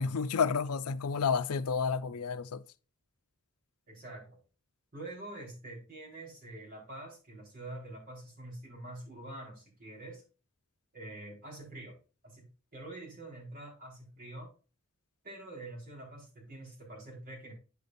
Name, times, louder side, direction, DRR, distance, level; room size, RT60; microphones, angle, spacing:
voice 1, 0.0-2.6, left 5 dB, 85° left, 0.5 m, -30 dB
voice 2, 3.9-4.3 4.9-10.2 10.9-11.9 12.2-12.5 12.7-14.5 15.2-17.5, right 2 dB, 40° right, 4.4 m, -46 dB
9.6 x 6.8 x 2.6 m
head